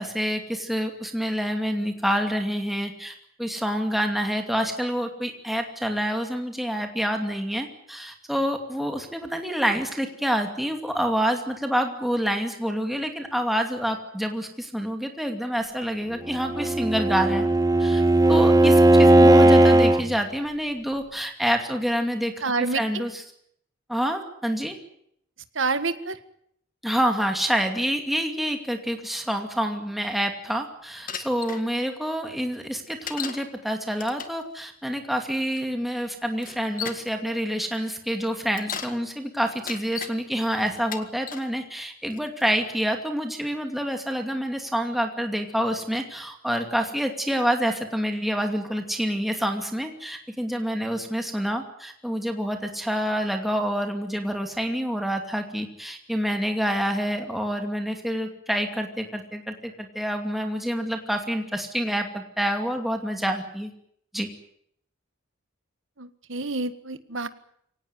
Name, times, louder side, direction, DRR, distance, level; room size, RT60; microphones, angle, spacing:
voice 1, 0.0-17.5 17.8-18.0 18.3-22.3 22.7-23.2 23.9-24.7 26.8-63.7 64.1-64.3, equal, ahead, 4 dB, 2.5 m, -27 dB
Bowed string instrument, 16.3-20.0, right 1 dB, 15° right, 1.1 m, -16 dB
voice 2, 22.4-23.0 25.5-26.2 66.0-67.3, right 3 dB, 65° right, 11 dB, 1.7 m, -28 dB
Bicycle, 31.1-31.6 33.1-33.5 33.9-34.4 35.5-35.6 36.4-37.1 38.4-39.0 39.5-40.1 40.8-41.5 42.1-42.5, left 7 dB, 40° left, 1.8 m, -35 dB
24.0 x 18.5 x 9.5 m, 0.71 s
head